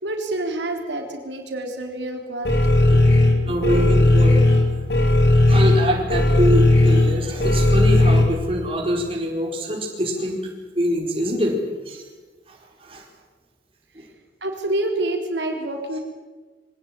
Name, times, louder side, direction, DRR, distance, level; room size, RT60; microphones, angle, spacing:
voice 1, 0.0-3.1 3.4-3.7 14.4-16.0, right 1 dB, 85° right, 2 dB, 3.9 m, -28 dB
sound 1, 2.5-8.2, left 2 dB, 70° left, 3.7 m, -16 dB
voice 2, 3.5-4.4 5.5-10.5 10.7-11.6 11.9-12.0 12.5-13.0 13.9-14.0, equal, 30° right, 0 dB, 4.5 m, -24 dB
24.0 x 18.0 x 9.1 m, 1.3 s
head